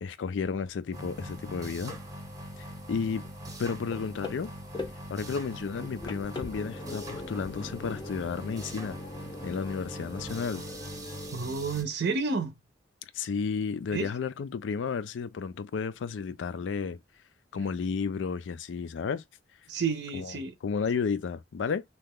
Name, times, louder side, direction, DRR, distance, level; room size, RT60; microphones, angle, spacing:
voice 1, 0.0-2.0 2.9-3.2 3.6-4.5 5.1-9.0 9.4-10.6 13.1-17.0 17.5-19.2 20.1-20.4 20.6-21.8, left 5 dB, 85° left, 0.4 m, -32 dB
sound 1, 0.9-11.8, equal, 20° right, 0.7 m, -42 dB
sound 2, 1.9-2.4 2.6-11.4, left 2 dB, 25° left, 0.4 m, -42 dB
voice 2, 11.3-12.5 13.9-14.1 19.7-20.5, right 4 dB, 70° right, 0.6 m, -30 dB
2.9 x 2.3 x 3.5 m
head